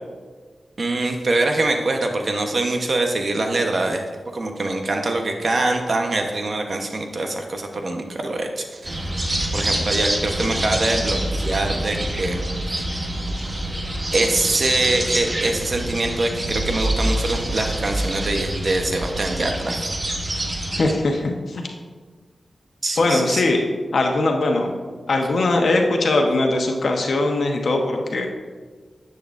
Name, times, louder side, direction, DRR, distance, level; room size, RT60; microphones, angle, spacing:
voice 1, 0.8-4.0 4.3-9.0 9.5-12.4 14.1-19.8 22.8-23.4, right 2 dB, 60° right, 4 dB, 1.1 m, -24 dB
sound 1, 8.8-20.9, right 1 dB, 35° right, 1.1 m, -26 dB
voice 2, 20.7-21.7 23.0-23.6 23.9-24.8 25.1-28.3, left 2 dB, 75° left, 2 dB, 1.1 m, -20 dB
10.5 x 7.9 x 2.6 m, 1.5 s
cardioid pair, 55°, 0 cm